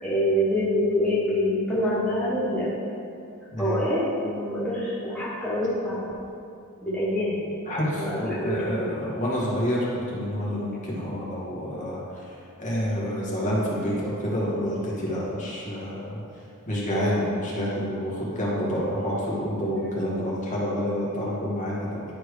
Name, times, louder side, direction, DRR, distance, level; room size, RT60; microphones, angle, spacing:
voice 1, 0.0-2.7 3.6-6.0 6.8-8.7 19.7-20.1, left 1 dB, 5° left, -10 dB, 1.5 m, -26 dB
voice 2, 3.5-3.8 7.7-9.8 10.1-12.0 12.6-16.2 16.7-22.0, equal, 35° left, -6 dB, 2.2 m, -28 dB
11.0 x 4.7 x 5.1 m, 2.5 s
head